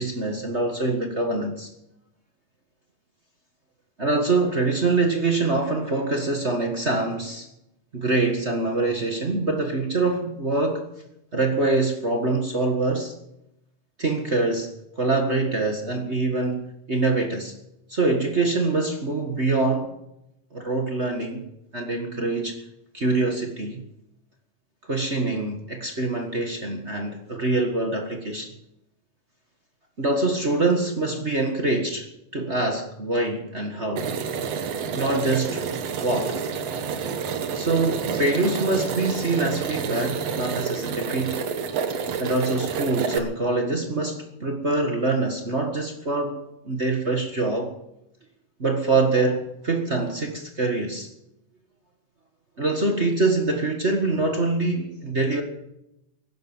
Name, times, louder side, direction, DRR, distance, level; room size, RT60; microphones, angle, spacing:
voice 1, 0.0-1.7 4.0-7.5 7.9-10.8 11.3-13.1 14.0-14.7 15.0-17.5 17.9-19.9 20.5-21.4 21.7-22.6 22.9-23.8 24.9-28.5 30.0-34.1 34.9-35.6 36.0-36.4 37.5-41.4 42.2-46.4 46.6-47.7 48.6-51.1 52.6-55.4, right 3 dB, 35° right, 1.2 m, -24 dB
sound 1, 34.0-43.2, right 6 dB, 60° right, 2.2 m, -29 dB
16.0 x 12.0 x 7.2 m
omnidirectional pair, 3.7 m